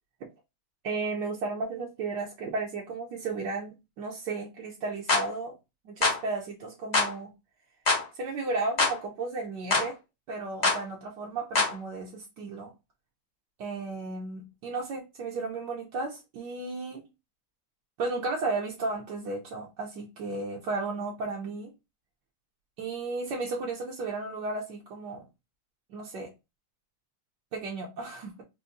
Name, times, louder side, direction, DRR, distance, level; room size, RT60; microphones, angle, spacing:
voice 1, 0.8-5.5 5.8-7.3 8.1-10.0 10.3-12.7 13.6-17.1 18.0-21.7 22.8-25.2 25.9-26.3 27.5-28.4, right 3 dB, 70° right, 1.3 m, -34 dB
sound 1, 5.1-5.3 6.0-6.2 6.9-7.1 7.9-8.0 8.8-9.0 9.7-9.9 10.6-10.8 11.6-11.7, left 3 dB, 40° left, 0.6 m, -24 dB
4.6 x 2.1 x 2.5 m
omnidirectional pair, 2.0 m